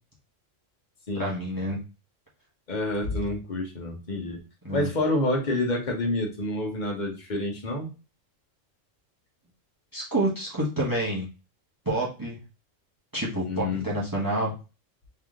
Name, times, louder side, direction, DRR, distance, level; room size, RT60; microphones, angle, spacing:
voice 1, 1.1-1.8 4.6-4.9 9.9-11.3 11.8-12.4 13.1-14.5, right 1 dB, 15° right, -3 dB, 1.2 m, -28 dB
voice 2, 2.7-4.4 4.7-7.9 13.4-13.9, left 2 dB, 35° left, 0 dB, 1.2 m, -28 dB
3.6 x 3.3 x 3.6 m, 0.31 s
omnidirectional pair, 1.3 m